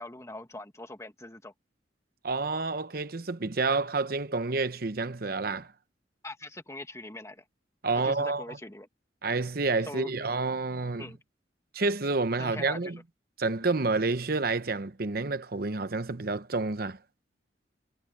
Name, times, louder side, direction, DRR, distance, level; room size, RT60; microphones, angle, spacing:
voice 1, 0.0-1.5 6.2-7.4 8.0-8.9 9.9-10.1 11.0-11.2 12.4-12.9, left 2 dB, 15° left, 1.8 m, -42 dB
voice 2, 2.2-5.7 7.8-8.6 9.2-11.1 11.7-13.0 13.4-17.0, right 3 dB, 55° right, 0.9 m, -29 dB
head